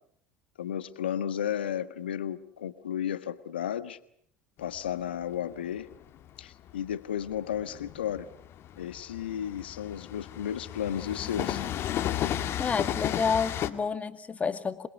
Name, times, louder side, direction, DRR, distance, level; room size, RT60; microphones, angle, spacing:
voice 1, 0.6-4.0 4.6-5.9 6.4-8.3 8.8-11.7, left 9 dB, 85° left, 13 dB, 1.3 m, -33 dB
Train, 4.6-13.7, left 11 dB, 50° left, 2.0 m, -34 dB
voice 2, 12.6-14.9, left 5 dB, 25° left, 10 dB, 2.2 m, -29 dB
27.0 x 21.0 x 8.2 m, 0.66 s
hypercardioid pair, 75°, 5 cm